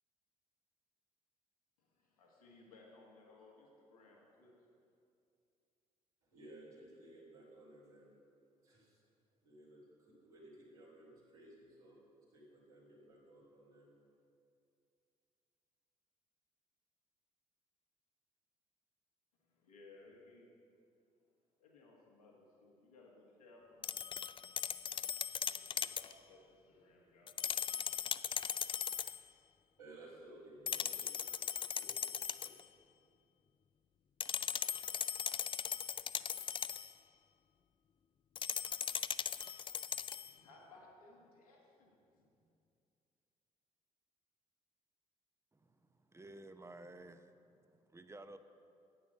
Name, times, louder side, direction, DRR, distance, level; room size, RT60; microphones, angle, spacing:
voice 1, 1.8-4.6 19.5-20.5 21.6-24.2 24.8-24.9 25.5-27.5 40.2-42.5, left 2 dB, 80° left, -2 dB, 1.7 m, -62 dB
voice 2, 6.2-8.2 8.6-9.0 9.4-12.0 12.3-13.9 29.8-31.1 31.5-31.9 32.4-32.5, right 1 dB, 80° right, -7 dB, 2.9 m, -57 dB
sound 1, 23.8-26.1 27.3-29.2 30.7-32.6 34.2-36.9 38.4-40.3, left 8 dB, 25° left, 0.3 m, -39 dB
voice 3, 45.5-48.4, right 2 dB, 15° right, 10 dB, 0.7 m, -54 dB
9.7 x 8.5 x 6.6 m, 2.5 s
figure-of-eight pair, 45°, 19 cm